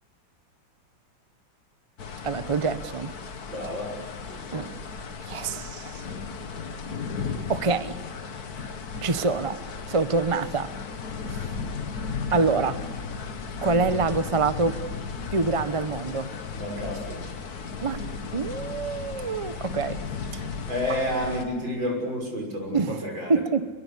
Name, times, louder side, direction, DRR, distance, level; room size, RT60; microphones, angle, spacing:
sound 1, 2.0-21.5, left 5 dB, 55° left, 1.9 m, -35 dB
voice 1, 2.2-3.1 4.5-4.7 5.3-6.0 7.5-8.0 9.0-9.6 9.9-10.7 11.3-11.4 12.3-12.8 13.6-14.8 15.3-16.3 17.8-18.0 18.3-20.0 20.9-21.0 22.7-23.0 23.3-23.7, right 4 dB, 25° right, 11 dB, 0.7 m, -25 dB
voice 2, 3.5-4.0 4.3-4.7 16.5-17.3 20.7-23.4, left 1 dB, 75° right, 2 dB, 7.1 m, -30 dB
26.5 x 22.0 x 8.5 m, 1.4 s
omnidirectional pair, 2.1 m